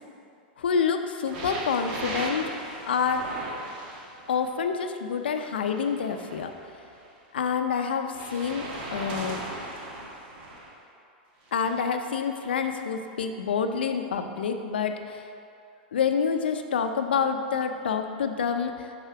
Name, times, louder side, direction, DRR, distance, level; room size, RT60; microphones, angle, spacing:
voice 1, 0.6-2.5 2.9-3.3 4.3-6.5 7.3-9.4 11.5-15.2 15.9-18.9, left 6 dB, 85° left, 7 dB, 0.5 m, -27 dB
sound 1, 1.3-4.4 5.3-7.1 8.1-10.7 11.4-11.8 12.6-12.7, right 2 dB, 60° right, 1.5 m, -38 dB
5.7 x 5.6 x 4.7 m, 2.5 s
hypercardioid pair, 115°, 5 cm